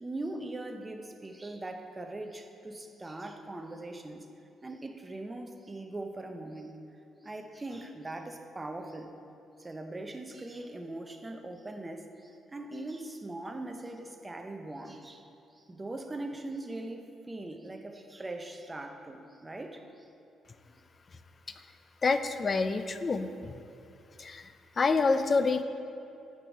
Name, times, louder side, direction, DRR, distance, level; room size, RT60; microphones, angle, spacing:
voice 1, 0.0-4.3 4.6-6.8 7.2-9.1 9.6-20.1, right 2 dB, 20° right, 5 dB, 0.6 m, -41 dB
voice 2, 22.0-23.5 24.2-25.6, left 4 dB, 35° left, 10 dB, 0.4 m, -27 dB
8.6 x 4.7 x 4.0 m, 2.7 s
cardioid pair, 90°, 0 cm